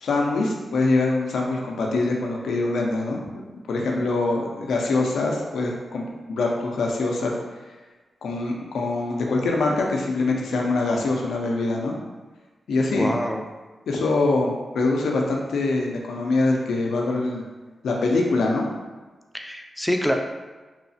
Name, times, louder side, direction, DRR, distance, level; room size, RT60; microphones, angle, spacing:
voice 1, 0.0-7.3 8.2-11.9 12.7-13.1 13.9-17.4 17.8-18.7, left 3 dB, 85° left, 0 dB, 0.4 m, -24 dB
voice 2, 13.0-13.4 19.3-20.1, equal, 5° left, 3 dB, 0.3 m, -25 dB
3.0 x 2.0 x 2.7 m, 1.3 s
cardioid pair, 55°, 0 cm